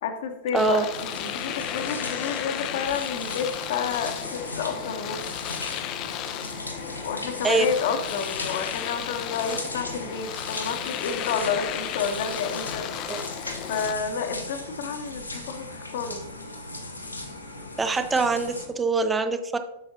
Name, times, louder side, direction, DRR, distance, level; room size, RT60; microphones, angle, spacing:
voice 1, 0.0-5.2 6.8-13.1 13.7-16.2, left 6 dB, 55° left, 7 dB, 0.8 m, -30 dB
voice 2, 0.5-0.8 7.4-7.7 13.1-13.2 17.8-19.6, right 4 dB, 15° right, 9 dB, 0.6 m, -24 dB
Domestic sounds home sounds, 0.6-14.0, left 11 dB, 40° left, 0.4 m, -34 dB
sound 1, 0.9-18.7, left 2 dB, 85° left, 0.9 m, -38 dB
7.9 x 6.7 x 2.7 m, 0.89 s
figure-of-eight pair, 90°, 0 cm